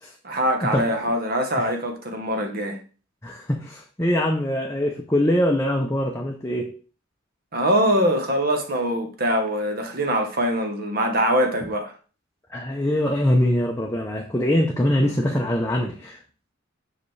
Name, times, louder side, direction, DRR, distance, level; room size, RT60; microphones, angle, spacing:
voice 1, 0.2-2.8 7.5-11.9 15.0-15.2, equal, 45° right, 1.1 m, -23 dB
voice 2, 3.2-6.7 12.5-16.2, left 1 dB, 15° left, 0.6 m, -23 dB
5.9 x 4.9 x 3.3 m
head